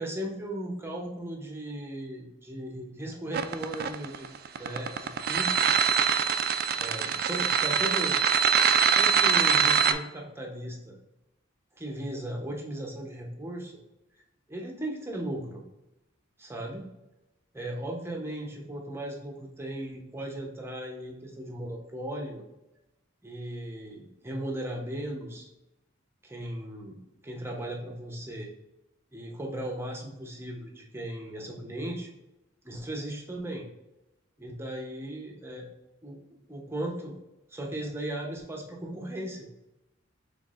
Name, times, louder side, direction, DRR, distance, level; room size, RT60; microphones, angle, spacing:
voice 1, 0.0-4.3 4.6-5.9 6.8-8.2 9.0-11.0 11.8-13.8 14.5-15.6 16.4-16.9 17.5-22.4 23.2-25.5 26.2-28.5 29.1-32.1 32.6-33.7 34.4-35.7 36.0-36.2 36.5-37.2 37.5-39.5, right 1 dB, 10° right, -1 dB, 0.8 m, -37 dB
sound 1, 3.3-9.9, right 7 dB, 50° right, 0.3 m, -23 dB
5.9 x 3.6 x 2.5 m, 0.95 s
head